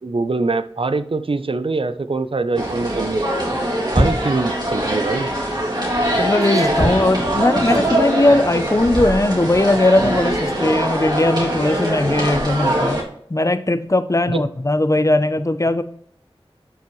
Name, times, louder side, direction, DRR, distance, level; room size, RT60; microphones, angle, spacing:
voice 1, 0.0-3.3 3.9-5.3 14.3-14.4, right 3 dB, 60° right, 11 dB, 0.5 m, -23 dB
sound 1, 2.6-13.0, right 1 dB, 45° right, 2.5 m, -22 dB
voice 2, 6.2-13.0 13.3-15.8, left 2 dB, 30° left, 11 dB, 0.6 m, -18 dB
11.5 x 6.0 x 3.1 m, 0.64 s
wide cardioid pair, 55°, 10 cm